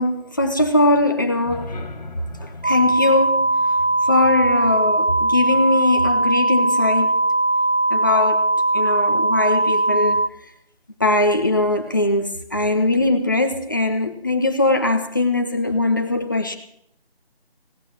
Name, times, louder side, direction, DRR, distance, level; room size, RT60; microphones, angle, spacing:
voice 1, 0.0-1.8 2.4-3.6 4.1-7.2 7.9-10.4 11.0-16.6, left 2 dB, 20° left, 5 dB, 0.8 m, -21 dB
sound 1, 1.3-5.4, left 2 dB, 40° left, 1.5 m, -39 dB
sound 2, 2.6-10.3, right 2 dB, 75° right, 0.9 m, -19 dB
17.0 x 9.6 x 7.4 m, 0.72 s
figure-of-eight pair, 160°, 31 cm